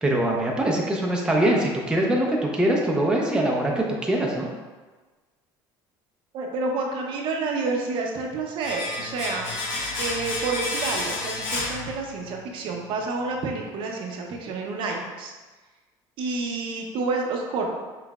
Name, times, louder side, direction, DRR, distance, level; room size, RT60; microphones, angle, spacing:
voice 1, 0.0-4.5, right 1 dB, 10° right, -1 dB, 0.6 m, -23 dB
voice 2, 6.3-9.5 10.0-15.3 16.2-17.8, right 3 dB, 60° right, 1 dB, 0.7 m, -29 dB
Domestic sounds home sounds, 8.6-12.4 12.7-12.8, left 2 dB, 85° left, 1.0 m, -30 dB
5.8 x 3.3 x 2.3 m, 1.3 s
cardioid pair, 125°, 10 cm